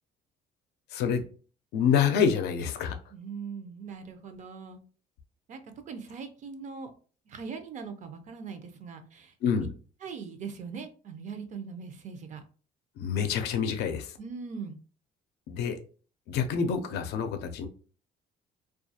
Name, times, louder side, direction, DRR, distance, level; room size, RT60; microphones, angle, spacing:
voice 1, 0.9-1.2 1.7-2.9 9.4-9.7 13.0-14.1 15.5-15.8 16.3-17.7, left 7 dB, 80° left, 7 dB, 0.5 m, -27 dB
voice 2, 3.1-4.8 5.5-5.6 5.9-6.9 7.3-9.7 10.0-12.4 14.2-14.8, right 5 dB, 45° right, 7 dB, 0.5 m, -41 dB
2.3 x 2.3 x 2.7 m, 0.39 s
cardioid pair, 110°, 17 cm